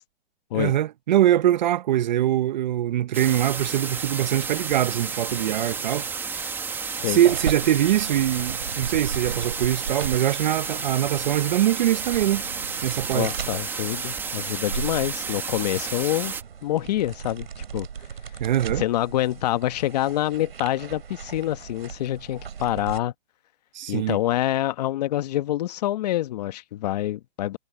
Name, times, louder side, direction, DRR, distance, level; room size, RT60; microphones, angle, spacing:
voice 1, 0.5-6.1 7.0-12.4 12.8-13.3 18.4-18.8 23.7-24.2, right 12 dB, 50° right, 1.0 m, -23 dB
sound 1, 3.1-16.4, right 5 dB, 5° right, 1.2 m, -31 dB
sound 2, 7.1-23.0, right 7 dB, 85° right, 3.7 m, -37 dB
voice 2, 13.1-16.3 16.6-17.5 17.7-17.9 18.8-23.1 23.9-27.6, left 14 dB, 45° left, 1.2 m, -26 dB
hypercardioid pair, 150°, 29 cm